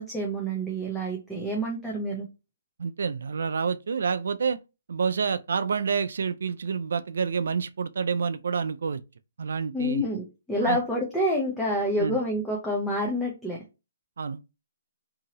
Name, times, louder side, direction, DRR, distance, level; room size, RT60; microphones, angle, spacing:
voice 1, 0.0-2.3 9.7-13.6, equal, 5° left, 0.6 m, -28 dB
voice 2, 2.8-4.6 4.9-9.0 9.4-10.0 10.6-10.8 12.0-12.2 14.2-14.4, right 6 dB, 65° right, 0.3 m, -28 dB
2.8 x 2.7 x 2.8 m
hypercardioid pair, 160°, 0 cm